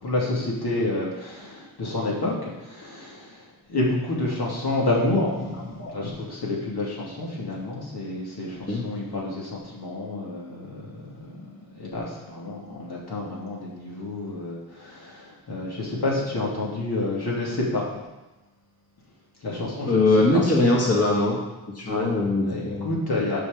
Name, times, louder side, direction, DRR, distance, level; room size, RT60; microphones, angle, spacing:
voice 1, 0.0-3.4 3.7-17.8 19.4-20.1 21.8-22.1 22.4-23.4, left 2 dB, 85° left, -4 dB, 2.7 m, -29 dB
voice 2, 19.9-21.4 21.8-22.9, left 2 dB, 40° left, -3 dB, 2.0 m, -21 dB
8.6 x 5.2 x 7.2 m, 1.1 s
wide cardioid pair, 95°, 38 cm